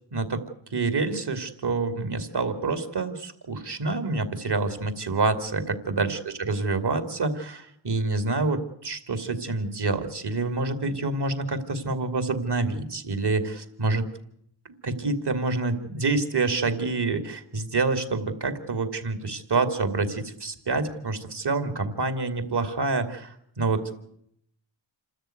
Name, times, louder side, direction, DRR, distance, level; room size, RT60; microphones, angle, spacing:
voice 1, 0.1-0.4 0.7-14.0 14.8-24.0, right 3 dB, 55° right, 9 dB, 2.8 m, -27 dB
28.0 x 13.0 x 9.2 m, 0.71 s
wide cardioid pair, 100°, 48 cm